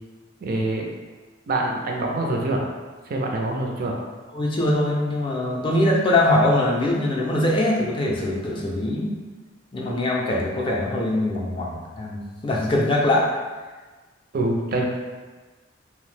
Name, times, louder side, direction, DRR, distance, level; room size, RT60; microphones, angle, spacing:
voice 1, 0.4-0.9 1.5-2.7 3.1-4.0 14.3-14.8, right 2 dB, 50° right, 0 dB, 0.4 m, -25 dB
voice 2, 4.3-9.1 9.7-13.3, left 1 dB, 25° left, -3 dB, 0.4 m, -22 dB
2.7 x 2.0 x 3.1 m, 1.3 s
head